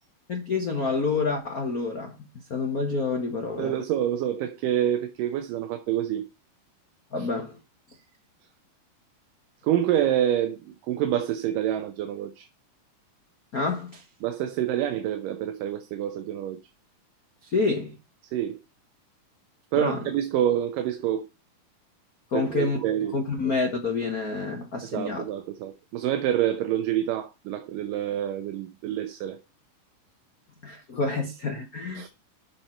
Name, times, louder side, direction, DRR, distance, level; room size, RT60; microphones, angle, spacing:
voice 1, 0.3-3.7 7.1-7.6 13.5-14.0 17.4-18.0 19.8-20.0 22.3-22.8 23.1-25.3 30.6-32.0, left 4 dB, 85° left, 0.8 m, -28 dB
voice 2, 3.6-6.3 7.2-7.3 9.6-12.5 14.2-16.6 18.3-18.6 19.7-21.3 22.3-23.2 24.8-29.4 32.0-32.1, right 11 dB, 80° right, 2.5 m, -27 dB
12.0 x 5.8 x 4.4 m
omnidirectional pair, 3.9 m